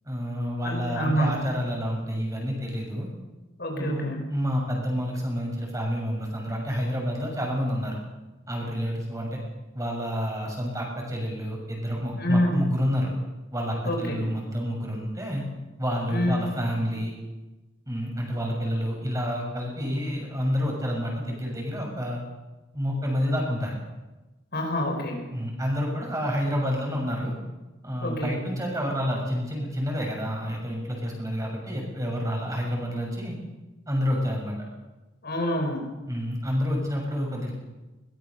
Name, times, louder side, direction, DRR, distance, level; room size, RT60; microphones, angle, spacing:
voice 1, 0.1-3.1 3.7-8.0 8.5-9.4 9.7-13.1 13.5-15.5 15.8-17.1 17.9-22.2 22.7-23.7 25.3-27.3 27.8-33.4 33.9-34.6 36.1-37.5, equal, 15° right, -1 dB, 7.0 m, -29 dB
voice 2, 0.6-1.3 3.6-4.3 12.2-12.6 13.8-14.2 16.1-16.4 24.5-25.2 28.0-28.4 35.2-35.9, equal, 50° left, 2 dB, 4.6 m, -27 dB
22.0 x 20.0 x 6.7 m, 1.1 s
head